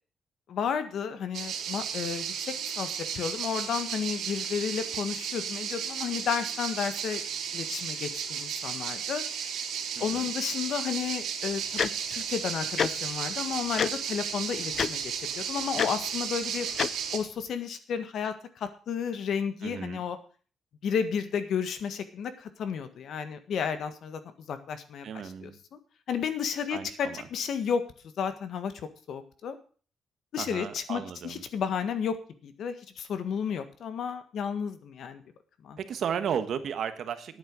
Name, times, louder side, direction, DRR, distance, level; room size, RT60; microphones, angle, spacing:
voice 1, 0.5-2.9 3.1-7.2 7.5-9.2 10.0-16.7 17.1-20.2 20.8-25.8 26.1-27.8 28.2-29.6 30.3-32.2 32.4-35.2 35.6-35.8, left 7 dB, 65° left, 10 dB, 1.6 m, -32 dB
sound 1, 1.3-17.2, right 7 dB, 75° right, 3.1 m, -34 dB
voice 2, 9.9-10.3 19.6-20.0 25.0-25.6 26.7-27.3 30.4-31.4 35.8-37.4, right 8 dB, 60° right, 10 dB, 1.4 m, -34 dB
Tick-tock, 11.8-11.9 12.8-12.9 13.8-13.9 14.7-14.9 15.8-15.9 16.8-16.9, left 7 dB, 45° left, 0.5 m, -25 dB
10.5 x 9.1 x 6.2 m, 0.40 s
cardioid pair, 145°, 0 cm